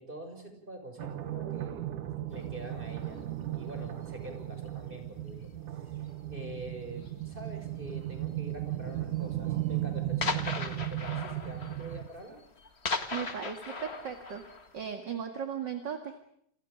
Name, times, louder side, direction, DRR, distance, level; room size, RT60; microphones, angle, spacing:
voice 1, 0.0-1.8 2.3-3.2 3.5-5.9 6.3-12.4, right 1 dB, 15° right, 4 dB, 6.1 m, -45 dB
sound 1, 1.0-12.1, right 13 dB, 70° right, 2.8 m, -36 dB
sound 2, 2.6-2.8 3.5-4.0 4.2-4.7 5.0-5.3 5.8-5.9 6.1-6.2 7.0-7.4 8.3-8.4 8.7-8.8 9.2-9.3 9.6-9.7 10.2-14.9, left 4 dB, 30° left, 1.2 m, -37 dB
voice 2, 13.1-14.4 14.7-16.2, right 7 dB, 40° right, 5 dB, 2.0 m, -37 dB
29.5 x 28.0 x 5.1 m, 0.69 s
omnidirectional pair, 3.9 m